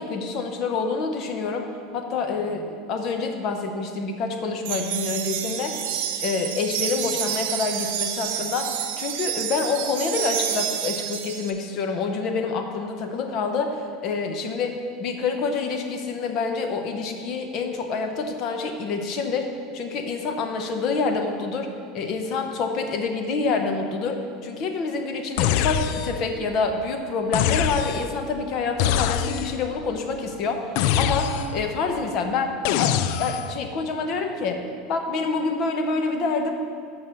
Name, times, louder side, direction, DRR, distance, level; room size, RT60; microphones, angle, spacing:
voice 1, 0.0-5.7 6.2-8.7 9.0-30.6 31.0-36.6, left 4 dB, 50° left, 5 dB, 0.9 m, -27 dB
sound 1, 4.6-11.5, right 10 dB, 75° right, 0.7 m, -29 dB
sound 2, 25.4-26.3 27.3-28.2 28.8-29.7 30.8-31.7 32.6-33.6, left 10 dB, 65° left, 0.3 m, -24 dB
7.4 x 5.6 x 6.7 m, 2.3 s
supercardioid pair, 135°, 0 cm